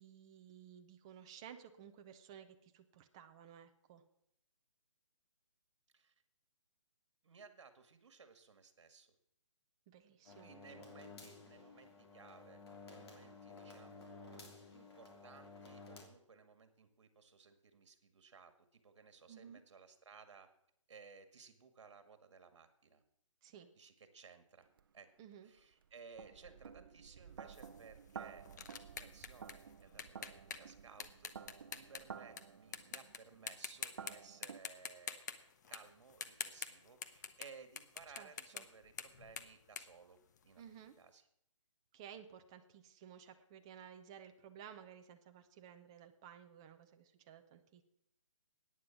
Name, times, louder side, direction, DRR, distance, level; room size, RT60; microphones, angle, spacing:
voice 1, 0.0-4.0 9.9-10.9 19.3-19.6 23.4-23.7 25.2-25.5 38.2-38.6 40.6-41.0 41.9-47.8, right 8 dB, 10° right, 6 dB, 0.4 m, -56 dB
voice 2, 7.2-9.1 10.4-20.5 20.9-23.0 23.8-24.7 24.9-25.1 25.4-31.3 31.7-35.2 35.7-40.2 40.4-41.2, right 5 dB, 60° right, 9 dB, 2.0 m, -59 dB
sound 1, 10.3-16.0, left 3 dB, 50° left, 3.2 m, -55 dB
sound 2, 24.8-24.9 25.6-34.6, right 7 dB, 40° right, 0.7 m, -53 dB
sound 3, 27.5-32.4 32.7-33.2 33.5-34.1 34.4-40.8, left 7 dB, 35° left, 0.8 m, -47 dB
15.0 x 9.5 x 6.0 m, 0.74 s
hypercardioid pair, 165°, 17 cm